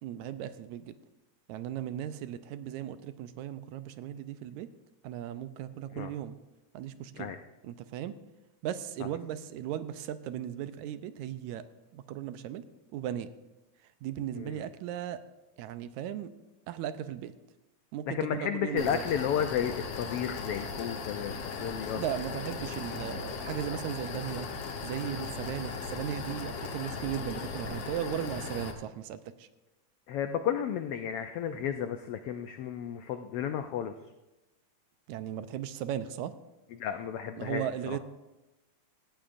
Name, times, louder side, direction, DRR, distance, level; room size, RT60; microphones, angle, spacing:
voice 1, 0.0-1.0 1.5-4.7 5.0-6.4 6.7-7.4 7.6-8.1 8.6-11.6 11.9-12.7 12.9-13.3 14.0-15.2 15.6-16.3 16.7-17.3 17.9-19.0 21.9-24.5 24.8-29.5 35.1-36.3 37.4-38.0, right 10 dB, 80° right, 12 dB, 2.0 m, -37 dB
voice 2, 14.3-14.6 18.1-22.0 30.1-33.9 36.7-38.0, left 9 dB, 85° left, 7 dB, 1.3 m, -33 dB
sound 1, 18.8-28.7, left 5 dB, 60° left, 1.9 m, -38 dB
18.0 x 14.0 x 2.6 m, 1.0 s
omnidirectional pair, 3.4 m